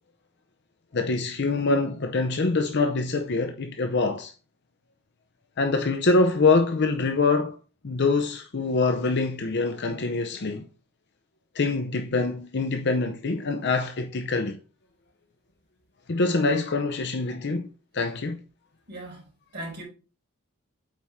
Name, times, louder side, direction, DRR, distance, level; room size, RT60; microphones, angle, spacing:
voice 1, 0.9-4.3 5.6-7.6 7.8-10.6 11.5-14.6 16.1-17.7 17.9-18.4, left 3 dB, 55° left, 0.6 m, -24 dB
voice 2, 18.9-19.8, right 1 dB, 50° right, 4.4 m, -39 dB
8.6 x 4.5 x 3.6 m
head